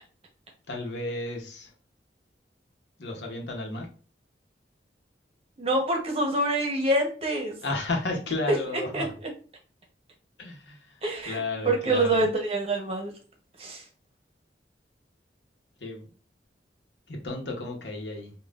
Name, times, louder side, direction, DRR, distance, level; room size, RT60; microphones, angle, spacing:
voice 1, 0.7-1.7 3.0-3.9 7.6-9.1 10.4-12.3 15.8-16.0 17.1-18.3, left 2 dB, 80° left, 2 dB, 0.9 m, -33 dB
voice 2, 5.6-7.5 8.5-8.6 8.9-9.0 11.0-11.4 11.6-13.1 13.6-13.8, right 1 dB, 35° right, 1 dB, 0.9 m, -25 dB
5.3 x 2.3 x 2.4 m, 0.39 s
head